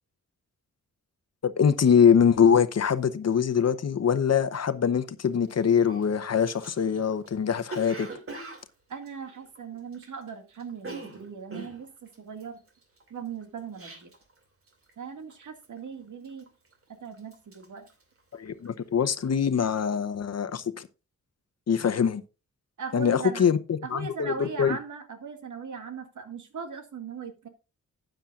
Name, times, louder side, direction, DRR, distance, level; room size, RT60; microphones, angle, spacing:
voice 1, 1.4-8.1 18.3-20.9 21.7-22.2 22.9-24.8, left 7 dB, 55° left, 0.9 m, -23 dB
Cough, 5.4-5.5 5.8-10.3 10.5-14.4 14.7-15.0 15.3-15.8 16.2-16.8 17.1-18.8 19.1-19.4, right 2 dB, 45° right, 2.6 m, -43 dB
voice 2, 8.9-12.6 13.1-14.1 15.0-16.5 16.9-17.9 22.8-23.5 23.8-27.5, right 6 dB, 75° right, 2.1 m, -39 dB
13.0 x 9.1 x 2.5 m
wide cardioid pair, 95°, 31 cm